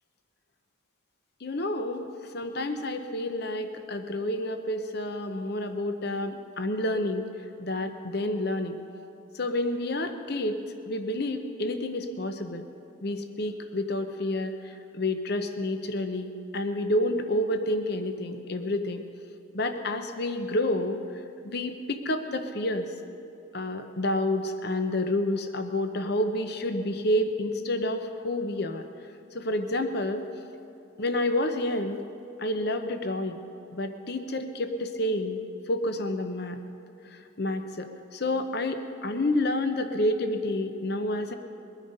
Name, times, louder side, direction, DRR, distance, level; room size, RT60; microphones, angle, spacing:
voice 1, 1.4-7.3 7.6-8.8 9.3-10.6 10.9-12.7 13.0-19.0 19.5-21.0 21.4-22.9 23.5-28.8 29.3-30.3 31.0-32.0 32.4-33.4 33.7-35.4 35.7-36.6 37.1-41.3, left 1 dB, 50° left, 7 dB, 0.8 m, -29 dB
22.0 x 9.2 x 5.3 m, 2.7 s
head